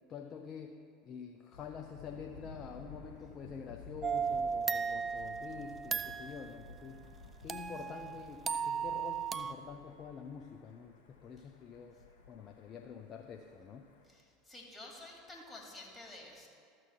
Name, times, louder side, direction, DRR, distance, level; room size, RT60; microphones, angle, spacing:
voice 1, 0.1-7.1 7.4-13.9, left 6 dB, 40° left, 4 dB, 0.5 m, -47 dB
Thunder, 1.5-14.1, left 3 dB, 70° left, 1.2 m, -55 dB
sound 1, 4.0-6.5 7.5-9.5, right 6 dB, 25° right, 0.4 m, -36 dB
voice 2, 14.1-16.5, left 2 dB, 15° left, -1 dB, 2.5 m, -50 dB
13.0 x 6.2 x 4.6 m, 2.4 s
figure-of-eight pair, 75°, 0 cm